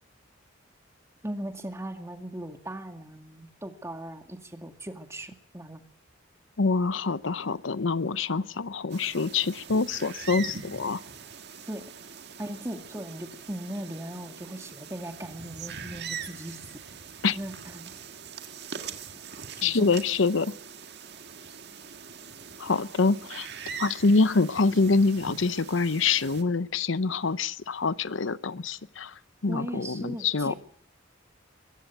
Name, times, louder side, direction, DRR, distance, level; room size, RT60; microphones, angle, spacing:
voice 1, 1.2-5.8 11.7-11.9 12.4-16.8 17.3-17.9 19.6-19.9 29.5-30.6, right 1 dB, 15° right, 6 dB, 2.3 m, -38 dB
voice 2, 6.6-11.0 17.2-17.4 19.6-20.5 22.6-23.5 23.8-29.1 29.4-30.5, left 4 dB, 80° left, 16 dB, 0.8 m, -25 dB
sound 1, 8.9-26.4, right 6 dB, 60° right, 1.9 m, -42 dB
22.5 x 15.5 x 8.0 m, 0.62 s
head